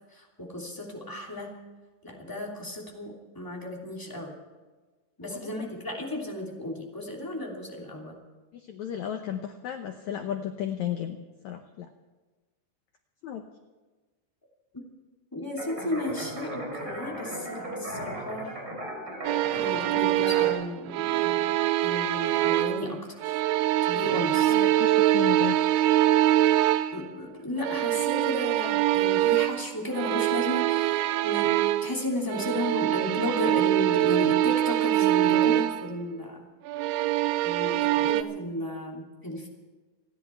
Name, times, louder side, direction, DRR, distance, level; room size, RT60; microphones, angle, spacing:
voice 1, 0.1-1.6 2.0-4.4 5.2-8.2 15.3-18.6 19.5-21.5 21.8-23.4 23.8-24.7 26.9-36.5 37.4-39.5, left 1 dB, 5° left, -2 dB, 2.2 m, -34 dB
voice 2, 5.2-5.5 8.5-11.2 11.4-11.9 13.2-13.4 24.5-25.6, left 10 dB, 80° left, 5 dB, 1.7 m, -34 dB
sound 1, 15.6-20.5, right 1 dB, 25° right, 4.3 m, -37 dB
sound 2, 19.3-22.9 23.2-27.1 27.6-32.0 32.3-35.9 36.7-38.2, right 14 dB, 85° right, 2.6 m, -24 dB
28.5 x 10.5 x 4.5 m, 1.3 s
omnidirectional pair, 4.5 m